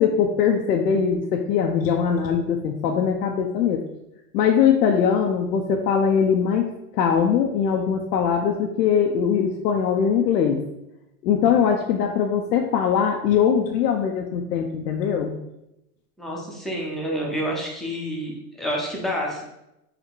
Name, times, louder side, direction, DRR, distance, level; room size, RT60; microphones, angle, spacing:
voice 1, 0.0-3.8 4.3-10.6 11.2-15.4, left 7 dB, 85° left, 2 dB, 0.7 m, -21 dB
voice 2, 16.2-19.4, equal, ahead, -3 dB, 0.6 m, -28 dB
4.9 x 2.2 x 4.6 m, 0.88 s
hypercardioid pair, 130°, 47 cm